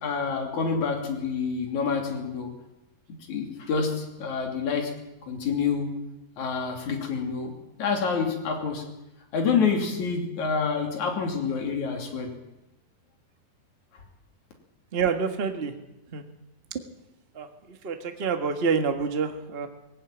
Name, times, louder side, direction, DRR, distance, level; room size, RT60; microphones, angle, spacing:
voice 1, 0.0-2.5 3.3-4.9 5.3-5.9 6.4-8.8 9.3-12.3, left 5 dB, 60° left, 2 dB, 4.1 m, -27 dB
voice 2, 14.9-15.7 16.1-16.2 17.3-19.7, right 5 dB, 75° right, 6 dB, 0.5 m, -27 dB
19.0 x 16.5 x 9.2 m, 0.95 s
omnidirectional pair, 3.9 m